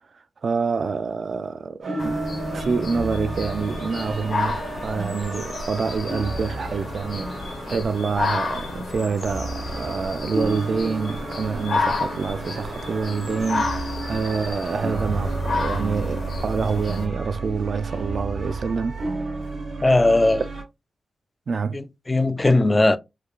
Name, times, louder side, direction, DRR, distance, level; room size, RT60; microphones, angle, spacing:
voice 1, 0.4-2.2 2.5-18.9 21.5-21.8, right 5 dB, 55° right, 0.4 m, -27 dB
sound 1, 1.8-20.6, right 2 dB, 85° right, 1.4 m, -32 dB
sound 2, 2.0-17.1, left 3 dB, 75° left, 1.2 m, -31 dB
voice 2, 19.8-20.5 21.7-23.0, left 2 dB, 20° left, 0.3 m, -18 dB
4.6 x 2.4 x 2.3 m
wide cardioid pair, 125°, 0 cm